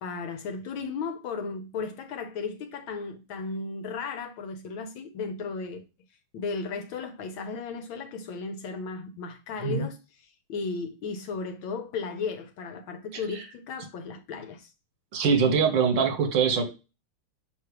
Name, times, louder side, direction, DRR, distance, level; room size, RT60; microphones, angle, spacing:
voice 1, 0.0-5.8 6.3-14.7, left 4 dB, 75° left, 1.5 m, -35 dB
voice 2, 15.1-16.6, right 6 dB, 65° right, 1.7 m, -23 dB
5.7 x 3.5 x 4.8 m
omnidirectional pair, 2.3 m